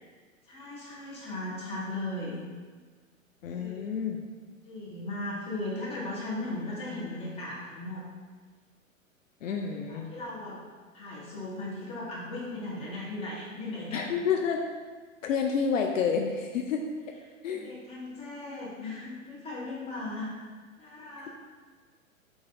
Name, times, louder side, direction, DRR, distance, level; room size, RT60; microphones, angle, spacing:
voice 1, 0.5-2.4 3.6-3.8 4.7-8.1 9.5-10.5 10.9-14.2 17.4-20.3 20.8-21.3, left 2 dB, 15° left, -6 dB, 1.0 m, -37 dB
voice 2, 3.4-4.2 9.4-10.1 13.9-14.6 15.2-16.8 17.4-17.7, left 6 dB, 70° left, 3 dB, 0.5 m, -29 dB
5.7 x 2.7 x 2.5 m, 1.5 s
figure-of-eight pair, 110°, 41 cm